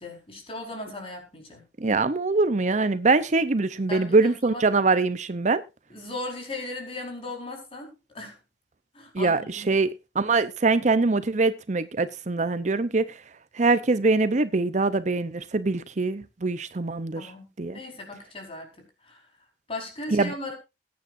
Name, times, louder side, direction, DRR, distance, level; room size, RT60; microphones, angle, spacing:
voice 1, 0.0-1.6 3.9-4.6 5.9-8.4 8.9-9.8 17.1-19.3 19.7-20.5, left 2 dB, 35° left, 4.7 m, -37 dB
voice 2, 1.8-5.6 9.1-9.9 10.2-13.2 13.5-17.3 17.6-17.8 20.1-20.3, right 3 dB, 45° right, 0.7 m, -23 dB
20.5 x 9.5 x 2.6 m
head